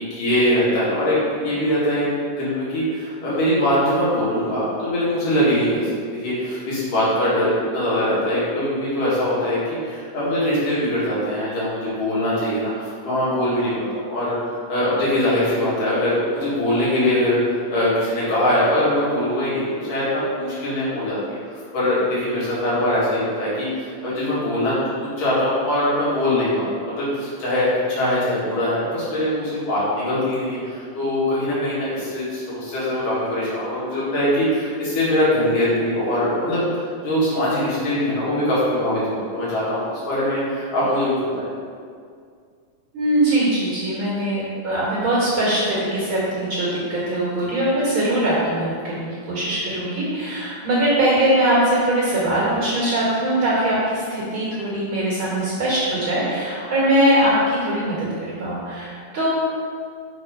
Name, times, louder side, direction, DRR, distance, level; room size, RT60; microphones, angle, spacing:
voice 1, 0.0-2.1 2.4-21.4 21.7-24.8 25.2-41.5, left 1 dB, 70° left, -9 dB, 3.5 m, -22 dB
voice 2, 42.9-59.3, right 1 dB, 45° right, -7 dB, 1.9 m, -21 dB
6.4 x 4.2 x 5.2 m, 2.2 s
omnidirectional pair, 3.9 m